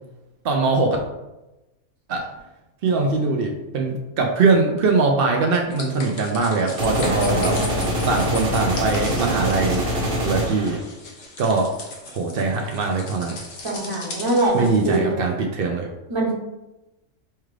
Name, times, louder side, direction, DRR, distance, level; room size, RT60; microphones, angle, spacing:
voice 1, 0.4-1.0 2.1-2.3 2.8-9.8 10.2-10.8 11.4-11.7 12.1-13.4 14.5-15.9, right 3 dB, 90° right, 1 dB, 0.5 m, -22 dB
sound 1, 5.7-15.0, left 2 dB, 65° left, 1.2 m, -38 dB
sound 2, 6.8-10.8, equal, 50° right, 1.0 m, -24 dB
voice 2, 7.1-8.0 13.6-15.2 16.1-16.3, right 2 dB, 25° right, -3 dB, 0.8 m, -24 dB
5.5 x 2.4 x 3.2 m, 1.0 s
omnidirectional pair, 1.5 m